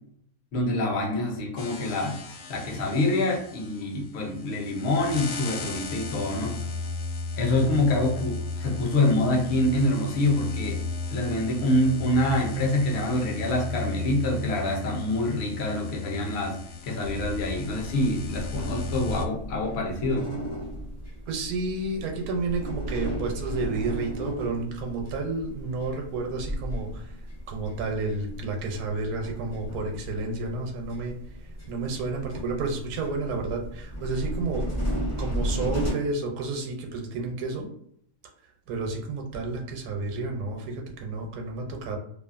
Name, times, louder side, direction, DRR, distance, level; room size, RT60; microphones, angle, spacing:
voice 1, 0.5-2.2 2.5-6.6 7.4-10.8 11.1-16.6 16.9-20.3, left 1 dB, 55° left, 0 dB, 0.8 m, -26 dB
sound 1, 1.6-19.3, left 4 dB, 85° left, 1.1 m, -36 dB
sound 2, 17.0-35.9, equal, 20° left, 0.4 m, -35 dB
voice 2, 21.3-27.2 27.5-31.1 31.7-34.7 35.2-37.7 38.7-42.0, right 3 dB, 85° right, 2 dB, 1.1 m, -31 dB
2.6 x 2.4 x 2.4 m, 0.68 s
omnidirectional pair, 1.5 m